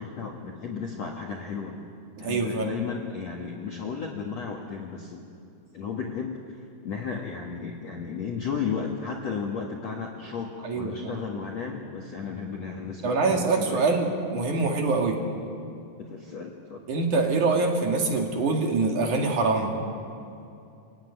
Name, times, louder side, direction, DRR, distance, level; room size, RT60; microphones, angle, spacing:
voice 1, 0.0-1.8 2.2-5.2 5.7-13.9 16.0-16.8, left 6 dB, 55° left, 0 dB, 1.9 m, -34 dB
voice 2, 2.2-2.7 10.6-11.2 13.0-15.2 16.9-19.8, right 3 dB, 50° right, 1 dB, 3.2 m, -24 dB
28.0 x 16.5 x 9.7 m, 2.6 s
omnidirectional pair, 5.3 m